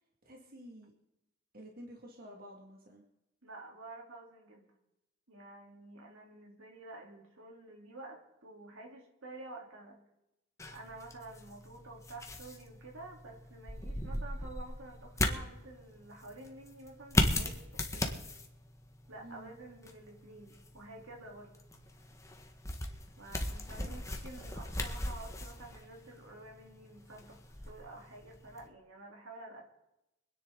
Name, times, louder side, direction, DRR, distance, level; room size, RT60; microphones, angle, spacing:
voice 1, 0.2-0.9 1.5-3.0 19.2-19.6 23.8-24.0, equal, 45° right, 0 dB, 2.2 m, -51 dB
voice 2, 3.4-4.7 5.3-10.0 10.7-18.3 19.1-21.5 23.2-29.6, right 2 dB, 75° right, 0 dB, 3.5 m, -50 dB
sound 1, 10.6-28.7, left 1 dB, 15° left, 1.5 m, -38 dB
25.5 x 10.0 x 3.9 m, 0.88 s
head